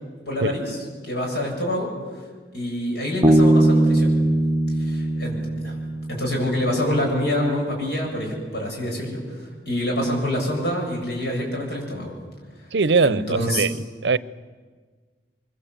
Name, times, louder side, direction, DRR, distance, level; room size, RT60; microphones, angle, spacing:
voice 1, 0.3-0.8 1.0-1.9 2.5-4.2 4.8-5.7 6.1-12.1 12.6-12.7 13.0-13.7, left 1 dB, 65° left, 7.9 m, -26 dB
Bass guitar, 3.2-6.8, right 1 dB, 15° right, 1.2 m, -20 dB
voice 2, 12.7-13.7 14.0-14.2, right 4 dB, 75° right, 0.7 m, -20 dB
24.0 x 24.0 x 8.1 m
head